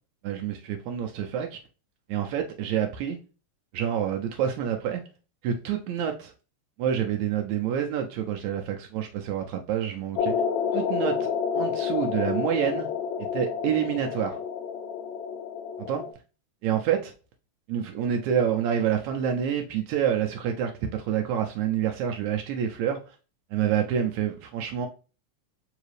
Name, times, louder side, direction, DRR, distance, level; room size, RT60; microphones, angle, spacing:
voice 1, 0.2-1.6 2.1-3.2 3.7-5.0 5.4-6.3 6.8-10.3 10.7-12.9 13.3-14.4 15.8-16.0 16.6-17.1 17.7-23.2 23.5-24.9, right 9 dB, 80° right, 1.9 m, -27 dB
sound 1, 10.2-16.1, left 7 dB, 80° left, 1.9 m, -29 dB
4.8 x 2.7 x 3.1 m
omnidirectional pair, 3.4 m